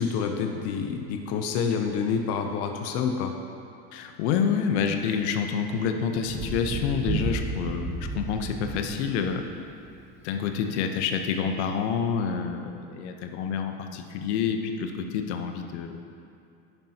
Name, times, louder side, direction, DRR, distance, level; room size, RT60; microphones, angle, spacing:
voice 1, 0.0-3.3, left 6 dB, 45° left, 4 dB, 0.7 m, -28 dB
voice 2, 3.9-9.5 10.2-16.0, left 6 dB, 80° left, 5 dB, 1.0 m, -28 dB
Thunder, 6.3-10.1 11.4-11.5, right 3 dB, 20° right, 0.9 m, -33 dB
10.5 x 10.5 x 2.9 m, 2.6 s
supercardioid pair, 155°, 34 cm